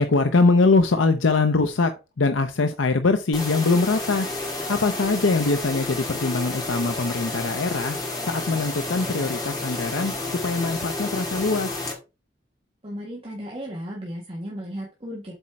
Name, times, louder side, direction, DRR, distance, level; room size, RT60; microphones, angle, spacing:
voice 1, 0.0-4.3 4.7-8.0 8.2-11.8, left 3 dB, 90° left, 7 dB, 0.7 m, -22 dB
sound 1, 3.3-11.9, left 2 dB, 20° left, 2.1 m, -31 dB
voice 2, 12.8-15.3, equal, 30° right, -3 dB, 1.6 m, -35 dB
8.1 x 4.3 x 4.6 m, 0.29 s
head